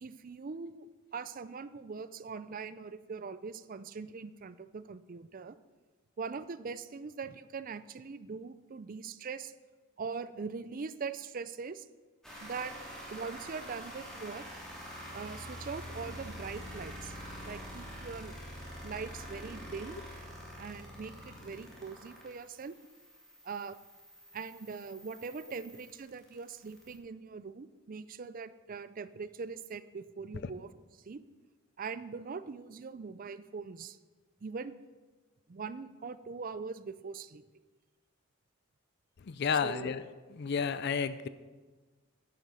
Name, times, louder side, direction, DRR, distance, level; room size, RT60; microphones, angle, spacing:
voice 1, 0.0-0.9 1.1-5.6 6.2-9.5 10.0-11.9 12.4-12.8 13.1-14.5 15.1-17.1 17.4-18.4 18.8-20.0 20.6-22.8 23.4-23.8 24.3-30.7 31.1-31.3 31.8-34.0 34.4-34.8 35.5-37.4 39.6-39.9, right 5 dB, 40° right, 14 dB, 0.4 m, -42 dB
sound 1, 12.2-27.0, equal, 5° left, 2.7 m, -46 dB
voice 2, 39.2-40.0 40.4-41.3, left 6 dB, 55° left, 14 dB, 0.4 m, -31 dB
11.0 x 9.1 x 5.4 m, 1.3 s
head